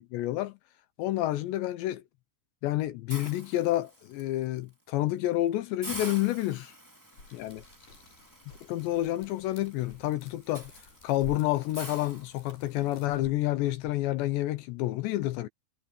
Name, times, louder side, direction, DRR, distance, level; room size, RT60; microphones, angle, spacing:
voice 1, 0.1-0.6 1.0-2.0 2.6-6.7 7.3-7.6 8.7-10.7 11.0-15.5, left 15 dB, 75° left, 2.9 m, -29 dB
Hiss, 3.1-4.2 4.7-4.9 5.2-5.3 5.8-12.9, right 1 dB, 5° right, 2.2 m, -46 dB
sound 1, 7.1-13.9, left 3 dB, 30° left, 7.0 m, -52 dB
sound 2, 7.2-13.1, left 5 dB, 55° left, 7.5 m, -60 dB
omnidirectional pair, 5.4 m